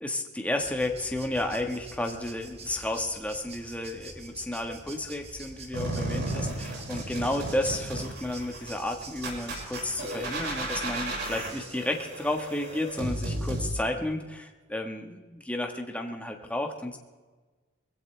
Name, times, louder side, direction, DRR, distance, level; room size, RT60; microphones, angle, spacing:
voice 1, 0.0-17.0, left 1 dB, 5° left, 3 dB, 1.4 m, -32 dB
sound 1, 0.6-10.1, right 3 dB, 30° right, 2.1 m, -47 dB
sound 2, 5.7-13.7, right 2 dB, 55° right, 5.6 m, -34 dB
22.5 x 15.5 x 3.3 m, 1.3 s
head